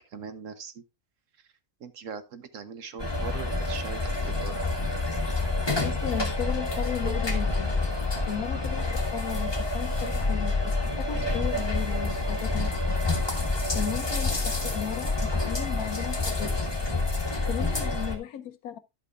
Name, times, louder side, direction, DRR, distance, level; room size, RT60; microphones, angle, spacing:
voice 1, 0.1-0.7 1.8-4.6, right 6 dB, 65° right, 1.2 m, -40 dB
sound 1, 3.0-18.2, left 3 dB, 20° left, 1.4 m, -28 dB
voice 2, 5.8-7.8 8.2-10.6 10.8-13.0 13.7-16.5 17.5-18.8, left 10 dB, 85° left, 1.2 m, -35 dB
11.0 x 8.2 x 2.4 m
omnidirectional pair, 1.5 m